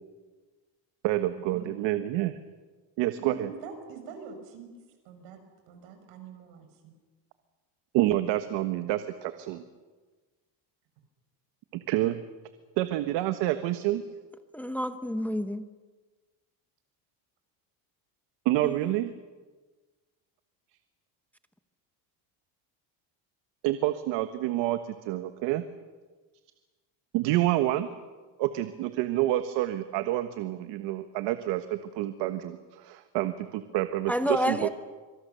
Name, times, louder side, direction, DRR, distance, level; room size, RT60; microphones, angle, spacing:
voice 1, 1.0-2.4 3.0-3.5 7.9-9.6 11.9-12.2 12.8-14.0 18.4-19.1 23.6-25.6 27.1-27.9 28.4-34.7, right 15 dB, 70° right, 9 dB, 1.4 m, -28 dB
voice 2, 3.2-4.7 5.0-5.4 5.7-6.9, right 5 dB, 85° right, 6 dB, 6.1 m, -44 dB
voice 3, 14.5-15.6 18.6-18.9 34.1-34.7, equal, 5° left, 9 dB, 0.9 m, -29 dB
26.0 x 24.0 x 6.8 m, 1.3 s
cardioid pair, 140°, 45 cm